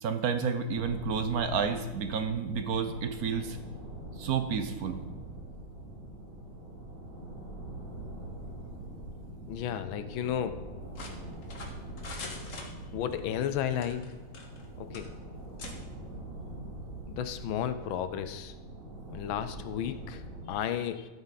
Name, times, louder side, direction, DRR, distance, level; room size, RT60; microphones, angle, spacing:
voice 1, 0.0-3.6 4.2-5.0, right 6 dB, 65° right, 9 dB, 1.0 m, -30 dB
sound 1, 0.7-20.5, right 1 dB, 90° right, 4.5 m, -43 dB
voice 2, 9.5-10.7 12.9-14.1 14.8-15.1 17.1-18.5 19.1-21.1, left 9 dB, 75° left, 11 dB, 1.4 m, -33 dB
sound 2, 10.9-13.2 13.7-14.7 14.9-15.1 15.6-15.8, left 3 dB, 40° left, 1.5 m, -44 dB
14.0 x 8.1 x 4.0 m, 1.2 s
omnidirectional pair, 2.3 m